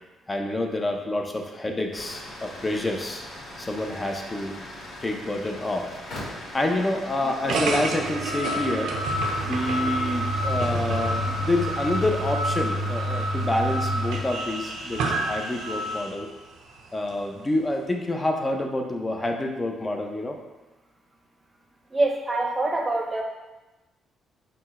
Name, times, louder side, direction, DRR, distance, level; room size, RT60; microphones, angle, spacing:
voice 1, 0.0-3.2 3.6-4.6 5.0-5.9 6.5-9.0 9.4-16.3 16.9-20.4, left 1 dB, 20° left, 3 dB, 0.5 m, -28 dB
sound 1, 1.9-16.0, left 2 dB, 70° left, 1.2 m, -35 dB
sound 2, 7.5-16.2, right 2 dB, 85° right, 0.5 m, -29 dB
voice 2, 21.9-23.2, right 2 dB, 25° right, 1 dB, 0.7 m, -25 dB
4.2 x 2.1 x 4.2 m, 1.1 s
cardioid pair, 90°, 0 cm